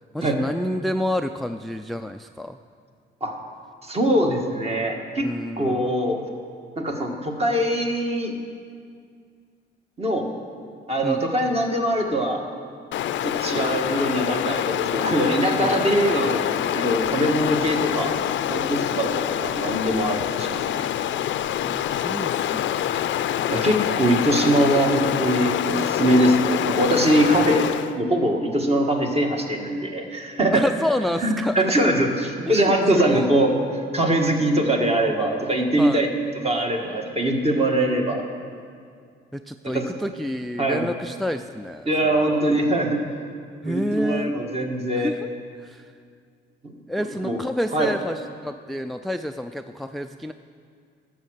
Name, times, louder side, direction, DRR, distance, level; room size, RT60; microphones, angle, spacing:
voice 1, 0.1-2.6 5.2-5.9 11.0-11.2 15.6-15.8 21.6-23.1 30.5-31.9 32.5-33.3 35.8-36.0 39.3-42.4 43.6-44.3 45.0-45.2 45.6-45.9 46.9-50.3, left 1 dB, ahead, 9 dB, 0.3 m, -29 dB
voice 2, 3.8-5.3 5.6-6.2 6.8-8.3 10.0-10.3 10.9-12.4 13.2-18.1 18.5-20.9 23.5-27.7 28.0-30.6 31.2-33.5 33.9-36.1 36.4-38.2 39.7-39.8 40.6-40.9 41.9-43.0 43.6-45.1 47.2-47.4 47.7-47.9, right 1 dB, 30° right, 2 dB, 1.7 m, -22 dB
Stream, 12.9-28.0, left 11 dB, 70° left, 0.5 m, -25 dB
12.0 x 7.6 x 6.5 m, 2.2 s
cardioid pair, 90°, 20 cm